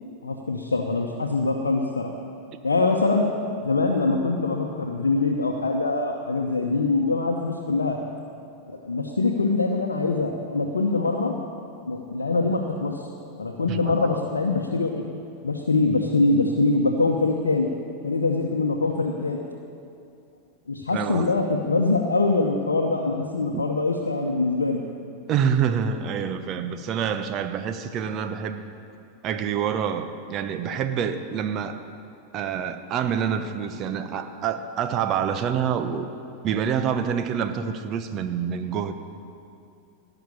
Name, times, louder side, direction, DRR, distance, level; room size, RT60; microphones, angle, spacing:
voice 1, 0.2-2.1 2.6-3.3 3.6-8.0 8.7-11.3 11.8-13.0 13.4-15.0 15.4-17.7 18.0-19.4 20.7-24.8, left 3 dB, 80° left, 1 dB, 0.9 m, -23 dB
voice 2, 13.7-14.0 20.9-21.3 23.5-23.6 25.3-28.6 29.2-31.8 32.3-36.1 36.4-38.9, right 7 dB, 35° right, 8 dB, 0.9 m, -27 dB
17.5 x 6.1 x 8.5 m, 2.5 s
figure-of-eight pair, 90°, 0 cm